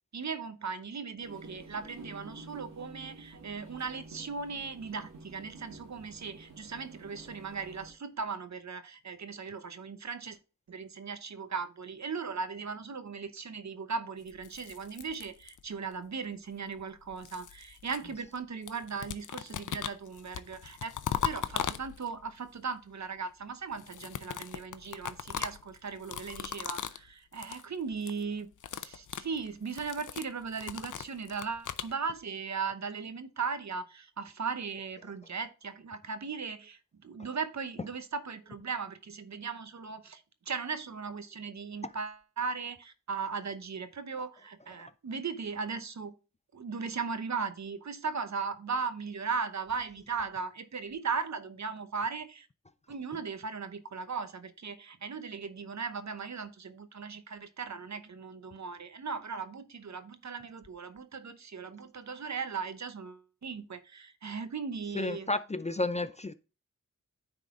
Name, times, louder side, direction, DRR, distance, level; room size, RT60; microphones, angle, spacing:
voice 1, 0.1-10.4 10.7-20.9 21.2-46.1 46.5-52.5 52.9-65.3, right 5 dB, 55° right, 0.9 m, -38 dB
sound 1, 1.2-7.9, right 2 dB, 75° right, 1.9 m, -50 dB
sound 2, 14.3-15.9 16.8-18.4 18.7-22.3 23.7-27.1 27.3-27.7 27.9-28.2 28.5-31.9, left 9 dB, 70° left, 0.6 m, -39 dB
voice 2, 64.9-66.3, left 2 dB, 20° left, 0.4 m, -31 dB
9.5 x 4.0 x 3.6 m
cardioid pair, 55°, 33 cm